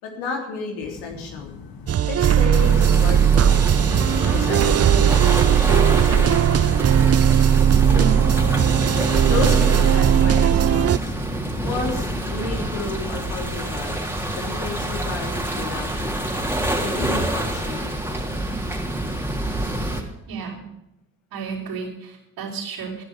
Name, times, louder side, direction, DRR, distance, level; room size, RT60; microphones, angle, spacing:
voice 1, 0.0-1.6 2.1-3.7 4.2-6.8 7.9-8.0 9.3-11.1 11.6-14.1 14.3-16.2 16.8-18.0 20.0-20.1, left 4 dB, 75° left, 2 dB, 3.4 m, -32 dB
sound 1, 0.8-12.7, left 6 dB, 60° left, 1.5 m, -40 dB
sound 2, 1.9-11.0, right 9 dB, 35° right, 0.7 m, -17 dB
sound 3, 2.5-20.0, right 1 dB, 5° right, 3.5 m, -27 dB
voice 2, 20.3-20.7 21.3-23.0, right 6 dB, 65° right, -9 dB, 5.3 m, -31 dB
14.5 x 10.5 x 6.7 m, 0.86 s
hypercardioid pair, 40°, 40 cm